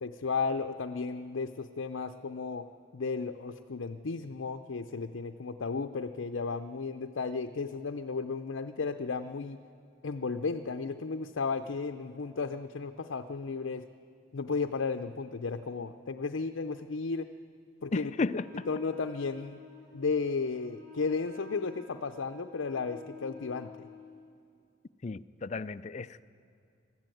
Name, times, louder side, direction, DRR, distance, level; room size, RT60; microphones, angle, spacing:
voice 1, 0.0-2.7 2.9-9.6 10.0-13.8 14.3-17.3 17.8-18.1 18.7-19.6 19.9-23.9, left 4 dB, 80° left, 0.6 m, -34 dB
voice 2, 17.9-18.7 25.0-26.3, left 3 dB, 35° left, 0.4 m, -34 dB
Wind instrument woodwind instrument, 18.3-24.2, left 4 dB, 55° right, 6.0 m, -50 dB
21.0 x 13.5 x 9.1 m
head